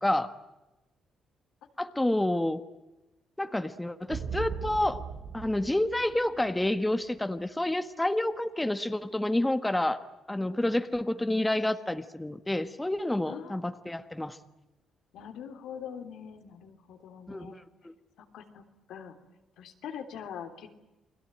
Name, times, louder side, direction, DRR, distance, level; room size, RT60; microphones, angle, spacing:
voice 1, 0.0-0.3 1.8-2.6 3.4-5.0 5.3-10.0 10.3-14.4 17.3-17.6, left 1 dB, 10° left, 9 dB, 1.5 m, -29 dB
sound 1, 4.1-6.7, right 6 dB, 80° right, 4.6 m, -38 dB
voice 2, 13.3-13.6 15.1-17.6 18.2-19.2 19.6-20.7, left 8 dB, 80° left, 5 dB, 3.2 m, -43 dB
30.0 x 21.0 x 9.1 m, 1.0 s
cardioid pair, 90°, 0 cm